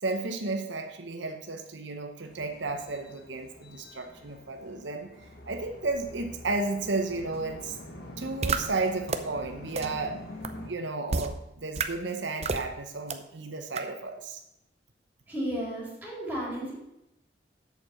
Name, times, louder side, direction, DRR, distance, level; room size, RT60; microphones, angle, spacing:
voice 1, 0.0-5.1 5.5-7.8 8.2-10.2 10.6-14.4, right 3 dB, 85° right, 5 dB, 0.9 m, -33 dB
sound 1, 2.2-10.7, left 1 dB, 60° left, 1.5 m, -46 dB
sound 2, 8.4-8.6 9.1-9.2 9.8-9.9 10.4-10.5 11.1-11.3 11.8-11.9 12.4-12.6 13.1-13.2 13.8-13.9, right 4 dB, 35° right, 0.6 m, -27 dB
voice 2, 15.3-16.7, right 1 dB, 10° right, -5 dB, 3.9 m, -33 dB
8.1 x 6.7 x 6.3 m, 0.87 s
head